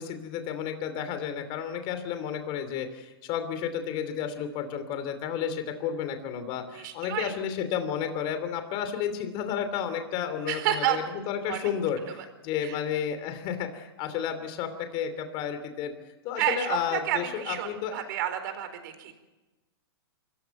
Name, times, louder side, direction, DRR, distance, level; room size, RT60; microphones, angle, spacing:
voice 1, 0.0-15.9 16.2-18.1, left 8 dB, 40° left, 9 dB, 2.9 m, -32 dB
voice 2, 6.7-7.3 10.5-11.0 11.5-11.7 12.1-12.2 12.6-12.8 16.4-19.1, right 11 dB, 55° right, 8 dB, 4.3 m, -30 dB
24.5 x 15.0 x 9.4 m, 1.1 s
hypercardioid pair, 125°, 13 cm